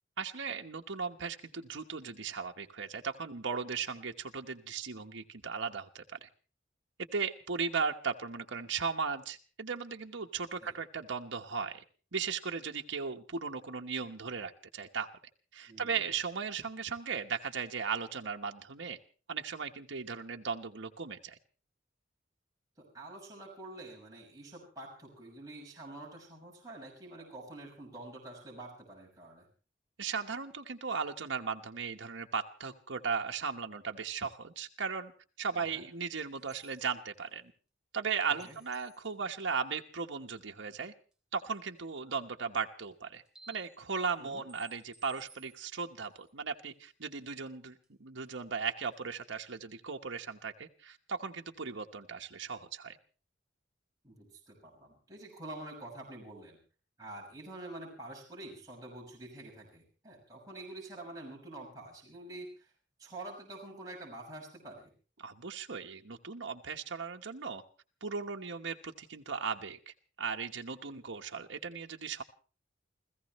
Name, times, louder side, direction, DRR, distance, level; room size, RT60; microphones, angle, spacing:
voice 1, 0.2-6.3 7.1-11.8 12.1-15.1 15.5-19.0 19.3-21.4 30.0-35.1 35.4-37.5 37.9-40.9 41.3-53.0 65.2-67.6 68.0-72.2, right 5 dB, 85° right, 3 dB, 1.2 m, -37 dB
voice 2, 15.7-16.0 22.8-29.5 35.5-35.8 38.4-38.6 44.2-44.4 54.0-56.6 57.0-62.7 63.0-64.9, right 2 dB, 20° right, -3 dB, 6.3 m, -47 dB
sound 1, 36.3-36.8 38.2-39.1 41.1-41.2 41.8-41.9 42.8-42.9 43.1-46.8 47.1-47.2 47.4-47.5 47.8-47.9 48.3-48.6 48.9-49.0, right 3 dB, 5° right, 2.7 m, -59 dB
29.5 x 15.5 x 3.1 m, 0.37 s
head